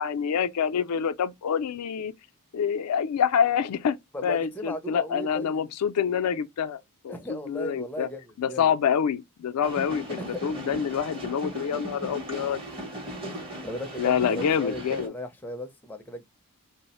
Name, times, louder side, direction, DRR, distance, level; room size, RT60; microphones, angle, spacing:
voice 1, 0.0-2.1 2.5-4.0 4.2-8.1 8.4-12.6 14.0-15.1, left 7 dB, 85° left, 0.4 m, -26 dB
voice 2, 4.1-5.7 7.1-8.2 8.5-8.7 10.2-10.4 13.2-16.3, left 1 dB, 10° left, 0.5 m, -36 dB
sound 1, 9.6-15.1, equal, 25° right, 0.8 m, -37 dB
3.1 x 2.0 x 4.1 m
head